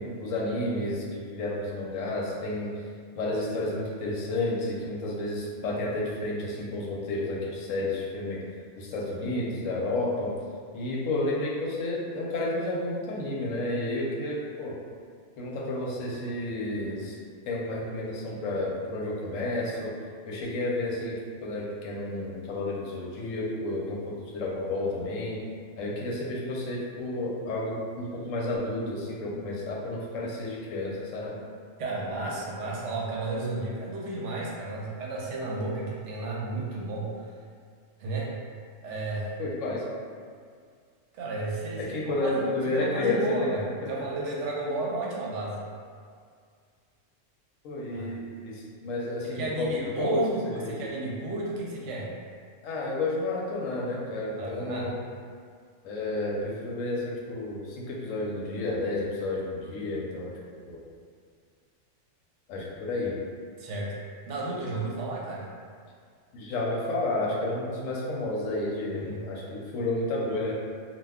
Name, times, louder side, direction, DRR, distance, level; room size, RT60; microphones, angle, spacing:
voice 1, 0.0-2.7 3.2-8.4 8.8-10.3 10.7-14.8 15.4-17.2 17.5-19.9 20.3-25.4 25.8-31.4 39.4-39.8 41.8-43.5 43.8-43.9 47.6-50.9 52.6-54.9 55.8-60.8 62.5-63.1 66.3-70.5, left 2 dB, 80° left, -4 dB, 1.0 m, -31 dB
voice 2, 31.8-37.1 38.0-38.3 38.8-39.4 41.1-42.5 42.7-45.6 47.9-48.1 49.4-52.1 54.4-54.9 63.6-63.9 64.3-65.5 68.9-69.2, right 2 dB, 70° right, -4 dB, 0.9 m, -32 dB
2.3 x 2.2 x 3.4 m, 2.1 s
omnidirectional pair, 1.3 m